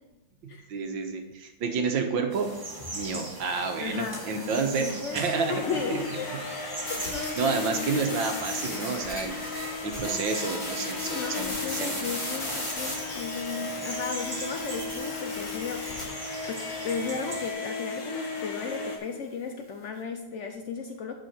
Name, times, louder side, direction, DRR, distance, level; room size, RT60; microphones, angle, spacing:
voice 1, 0.4-2.5 2.9-5.6 5.9-6.0 7.4-9.4 9.8-11.9, right 5 dB, 75° right, 4 dB, 1.7 m, -30 dB
sound 1, 2.3-17.5, right 2 dB, 35° right, 0.3 m, -41 dB
voice 2, 3.8-5.2 5.5-6.3 6.9-7.6 11.1-21.1, left 5 dB, 80° left, 5 dB, 0.6 m, -35 dB
sound 2, 4.0-5.1 6.8-16.0, left 1 dB, 25° left, 2.2 m, -37 dB
sound 3, 5.2-19.0, left 4 dB, 55° left, 1.7 m, -36 dB
9.3 x 5.6 x 4.3 m, 1.1 s
omnidirectional pair, 2.1 m